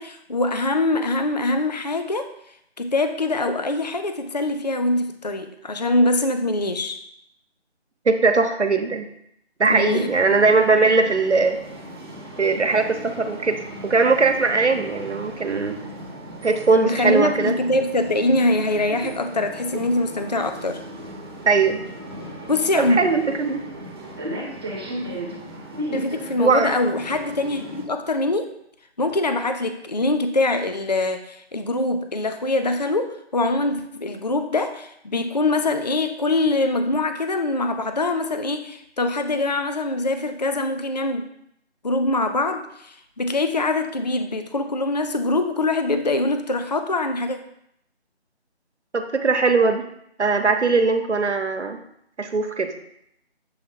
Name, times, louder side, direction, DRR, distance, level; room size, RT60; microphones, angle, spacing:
voice 1, 0.0-2.3 2.8-7.0 9.7-10.1 16.8-20.8 22.5-23.0 25.9-28.5 29.0-41.2 41.8-47.4, left 2 dB, 40° left, 8 dB, 0.4 m, -23 dB
voice 2, 8.1-9.1 9.6-11.6 12.4-15.8 16.4-17.5 21.5-21.8 22.8-23.6 26.4-26.8 48.9-49.9 50.2-51.8 52.2-52.7, right 4 dB, 90° right, 7 dB, 1.0 m, -20 dB
sound 1, 9.7-27.9, right 1 dB, 25° right, 0.8 m, -36 dB
7.1 x 3.4 x 4.4 m, 0.75 s
figure-of-eight pair, 160°, 33 cm